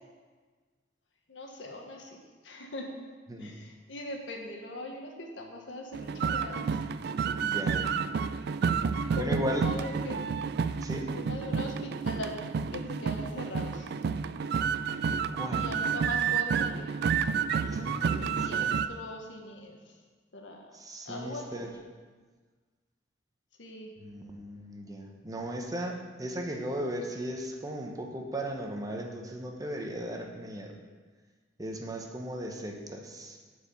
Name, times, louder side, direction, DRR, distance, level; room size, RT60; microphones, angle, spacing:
voice 1, 1.3-2.9 3.4-6.7 9.1-10.2 11.1-12.4 12.7-13.9 15.5-16.9 18.2-20.0 20.3-20.7 21.0-21.7 23.6-23.9, left 1 dB, 80° left, 2 dB, 1.3 m, -41 dB
sound 1, 5.9-18.9, right 6 dB, 60° right, 0.3 m, -30 dB
voice 2, 7.4-8.0 9.1-9.6 10.8-11.0 15.3-15.7 17.6-18.8 20.7-21.7 24.0-30.7 31.6-33.4, equal, 20° right, 1 dB, 0.9 m, -36 dB
9.2 x 4.8 x 6.9 m, 1.4 s
head